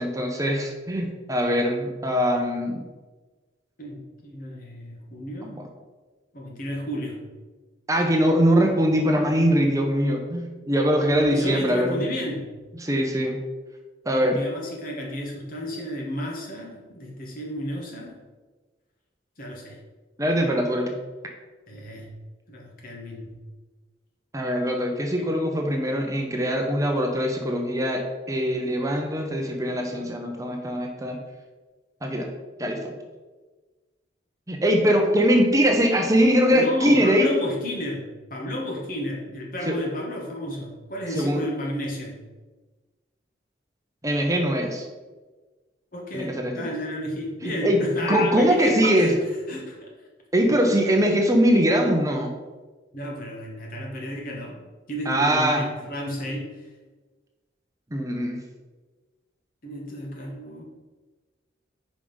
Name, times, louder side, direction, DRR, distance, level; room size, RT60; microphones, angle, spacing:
voice 1, 0.0-2.8 5.4-5.7 7.9-12.1 12.8-13.4 14.1-14.4 20.2-20.9 24.3-31.2 32.0-32.3 32.6-32.9 34.5-37.3 39.7-39.8 41.1-41.4 44.0-44.8 46.1-46.7 47.4-47.8 48.1-49.1 50.3-52.3 55.1-55.6 57.9-58.4, equal, 20° right, 2 dB, 0.7 m, -22 dB
voice 2, 3.8-5.6 6.3-7.2 11.3-12.5 14.2-18.2 19.4-19.8 21.7-22.1 22.5-23.4 25.2-25.3 36.5-42.2 45.9-49.2 49.5-49.9 52.9-54.6 54.9-56.7 59.6-60.6, left 1 dB, 50° left, -1 dB, 1.5 m, -32 dB
5.3 x 5.0 x 5.4 m, 1.3 s
head